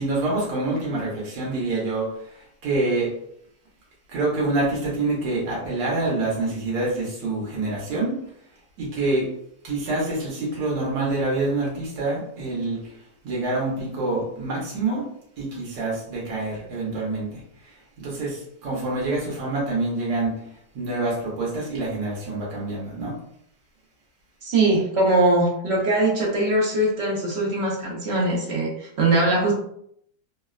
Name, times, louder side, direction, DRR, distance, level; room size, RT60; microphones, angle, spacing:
voice 1, 0.0-3.1 4.1-8.2 8.8-9.3 9.6-12.9 13.2-15.0 15.4-17.4 18.0-20.4 20.7-23.1, right 2 dB, 85° right, -5 dB, 1.5 m, -26 dB
voice 2, 24.4-29.5, right 2 dB, 60° right, -3 dB, 0.7 m, -21 dB
3.3 x 2.1 x 2.3 m, 0.71 s
omnidirectional pair, 1.8 m